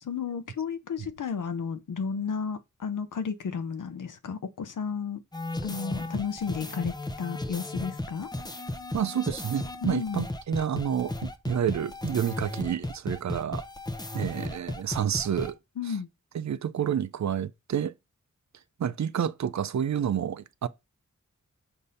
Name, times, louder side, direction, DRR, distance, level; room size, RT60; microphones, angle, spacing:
voice 1, 0.0-5.2 5.6-8.3 9.8-10.3 15.8-16.1, left 6 dB, 80° left, 0.6 m, -33 dB
sound 1, 5.3-15.5, left 1 dB, 15° left, 0.6 m, -35 dB
voice 2, 8.9-13.7 14.1-15.6 16.3-17.9 18.8-20.7, right 9 dB, 65° right, 0.5 m, -29 dB
6.6 x 2.7 x 5.5 m
wide cardioid pair, 105°, 31 cm